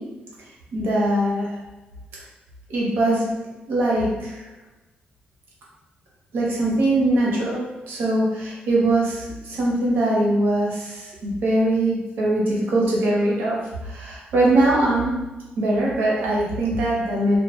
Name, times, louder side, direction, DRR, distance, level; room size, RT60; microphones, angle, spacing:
voice 1, 0.7-1.5 2.7-3.3 3.7-4.4 6.3-13.6 13.8-15.1 15.6-17.4, right 1 dB, 85° right, -4 dB, 0.8 m, -21 dB
2.2 x 2.1 x 3.0 m, 1.1 s
cardioid pair, 125°, 3 cm